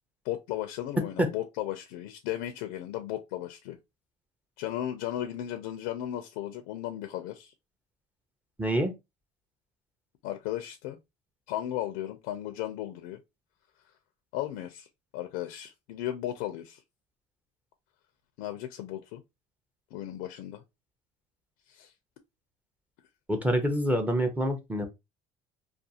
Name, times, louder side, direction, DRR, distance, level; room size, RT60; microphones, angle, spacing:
voice 1, 0.2-3.8 4.6-7.5 10.2-11.0 11.5-13.2 14.3-14.9 15.1-16.8 18.4-19.2 19.9-20.6 21.7-21.9, left 12 dB, 85° left, 0.4 m, -35 dB
voice 2, 8.6-8.9 23.3-24.9, equal, 10° right, 0.5 m, -26 dB
2.4 x 2.3 x 2.7 m
cardioid pair, 125°, 15 cm